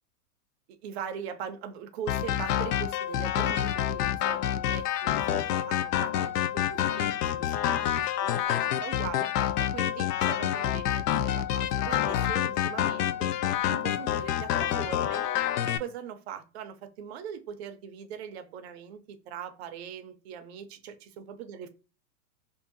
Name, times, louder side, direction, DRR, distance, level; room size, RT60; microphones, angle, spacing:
voice 1, 0.8-8.1 8.4-9.3 9.6-13.3 13.7-15.2 15.6-21.7, right 8 dB, 45° right, 0.5 m, -41 dB
sound 1, 2.1-15.8, left 11 dB, 85° left, 0.5 m, -28 dB
2.6 x 2.5 x 2.5 m
supercardioid pair, 150°, 46 cm